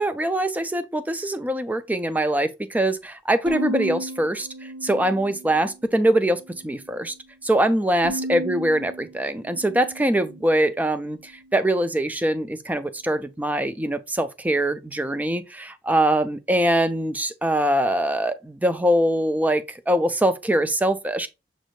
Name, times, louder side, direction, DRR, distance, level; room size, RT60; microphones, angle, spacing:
voice 1, 0.0-4.5 4.8-7.1 7.4-21.3, right 1 dB, 10° right, 0.3 m, -23 dB
Bowed string instrument, 3.5-5.8 6.3-7.1 8.0-10.6, right 1 dB, 75° right, 1.0 m, -35 dB
6.2 x 2.5 x 3.1 m
head